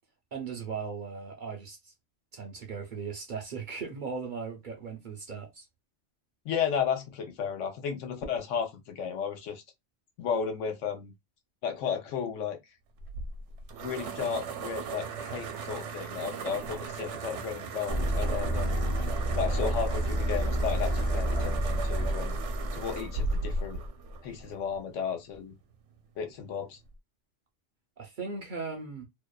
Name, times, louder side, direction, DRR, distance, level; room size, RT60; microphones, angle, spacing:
voice 1, 0.3-1.9 2.3-5.7 28.0-29.0, right 5 dB, 55° right, 0.6 m, -38 dB
voice 2, 6.4-9.6 10.2-11.1 11.6-12.6 13.8-18.8 19.3-22.4 22.7-23.8 24.2-25.6 26.2-26.8, left 7 dB, 90° left, 1.1 m, -33 dB
sound 1, 13.0-24.8, right 4 dB, 80° right, 0.9 m, -37 dB
sound 2, 17.9-23.9, right 1 dB, 40° left, 0.5 m, -30 dB
2.7 x 2.1 x 2.2 m
omnidirectional pair, 1.2 m